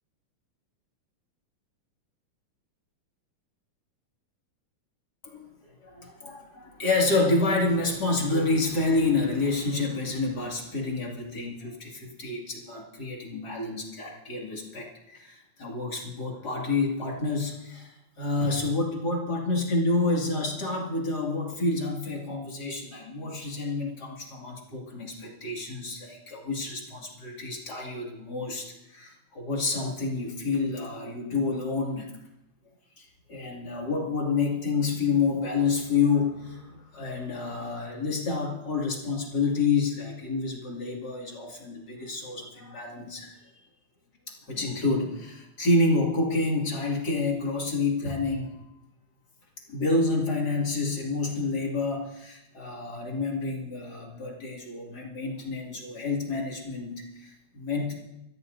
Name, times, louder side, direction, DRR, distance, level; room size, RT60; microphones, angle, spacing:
voice 1, 5.8-32.1 33.0-43.4 44.3-48.5 49.7-57.9, left 3 dB, 35° left, -2 dB, 2.6 m, -28 dB
25.5 x 14.0 x 2.7 m, 0.85 s
omnidirectional pair, 3.5 m